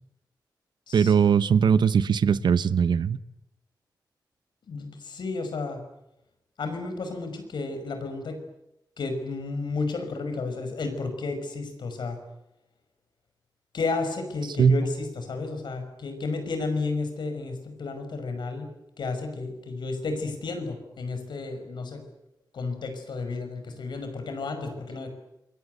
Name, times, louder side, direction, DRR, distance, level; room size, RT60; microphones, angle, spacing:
voice 1, 0.9-3.2 14.6-14.8, right 7 dB, 80° right, 15 dB, 0.9 m, -20 dB
voice 2, 4.7-5.8 6.6-8.4 9.0-12.2 13.7-18.7 19.0-22.0 22.5-25.1, left 3 dB, 85° left, 7 dB, 5.8 m, -32 dB
27.5 x 23.0 x 8.1 m, 0.85 s
wide cardioid pair, 90°, 8 cm